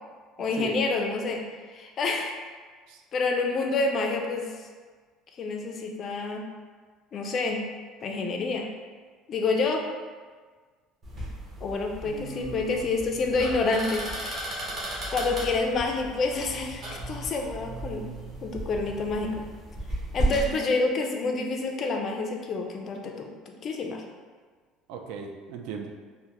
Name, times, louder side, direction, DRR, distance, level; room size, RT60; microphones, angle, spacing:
voice 1, 0.4-1.4 1.7-2.3 3.1-4.5 5.3-6.5 7.1-7.6 8.0-8.7 9.3-9.9 11.6-14.5 15.1-18.1 18.4-19.4 20.1-24.0, left 3 dB, 35° left, 2 dB, 0.3 m, -28 dB
sound 1, 11.0-20.5, right 1 dB, 30° right, 0.9 m, -35 dB
voice 2, 12.0-13.3 24.9-25.9, right 5 dB, 70° right, 3 dB, 0.3 m, -38 dB
3.5 x 2.1 x 2.9 m, 1.5 s
cardioid pair, 160°, 0 cm